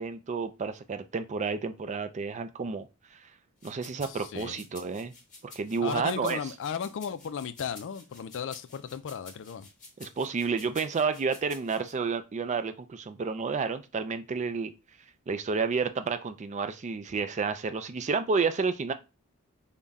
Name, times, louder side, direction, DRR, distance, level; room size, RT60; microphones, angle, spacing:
voice 1, 0.0-2.9 3.6-5.1 5.4-6.4 10.0-14.7 15.3-18.9, right 5 dB, 30° right, 0.4 m, -30 dB
sound 1, 3.6-11.9, left 3 dB, 35° left, 1.3 m, -50 dB
voice 2, 4.1-4.6 5.8-9.7, left 7 dB, 60° left, 0.4 m, -35 dB
5.4 x 2.2 x 3.5 m
head